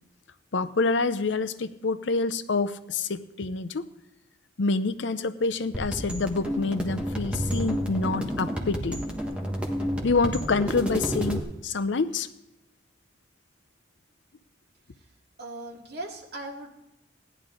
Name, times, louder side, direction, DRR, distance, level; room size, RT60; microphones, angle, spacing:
voice 1, 0.5-3.9 4.6-9.0 10.0-12.3, left 3 dB, 70° left, 13 dB, 0.7 m, -27 dB
sound 1, 5.7-11.4, equal, 5° right, 1.5 m, -30 dB
voice 2, 15.4-16.7, right 2 dB, 55° right, -1 dB, 2.3 m, -38 dB
17.0 x 11.0 x 3.8 m, 0.88 s
head